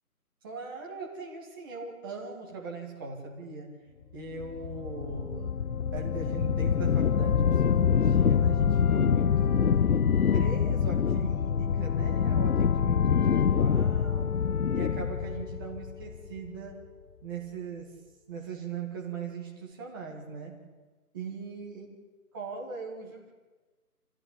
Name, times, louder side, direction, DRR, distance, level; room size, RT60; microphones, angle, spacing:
voice 1, 0.4-3.7 4.1-5.5 5.9-9.9 10.3-14.3 14.7-16.8 17.2-17.9 18.3-20.5 21.1-21.9 22.3-23.3, right 4 dB, 15° right, -2 dB, 2.2 m, -40 dB
sound 1, 4.4-16.5, left 7 dB, 65° left, 0.7 m, -25 dB
26.5 x 16.0 x 8.7 m, 1.2 s
figure-of-eight pair, 170°, 46 cm